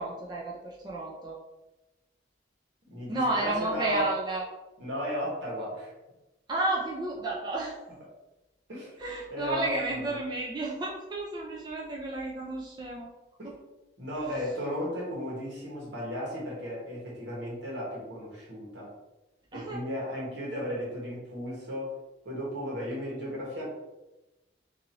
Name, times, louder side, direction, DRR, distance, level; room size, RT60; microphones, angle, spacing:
voice 1, 0.0-1.4 3.1-4.4 6.5-7.8 9.0-13.1 13.4-13.5 14.1-14.3 19.5-19.9, right 2 dB, 25° right, -3 dB, 0.3 m, -32 dB
voice 2, 2.9-4.1 4.8-5.9 8.7-9.0 9.3-10.1 13.4-13.5 14.0-18.9 19.5-21.9 22.2-23.6, equal, 80° right, -4 dB, 1.2 m, -35 dB
2.7 x 2.6 x 2.8 m, 1.0 s
head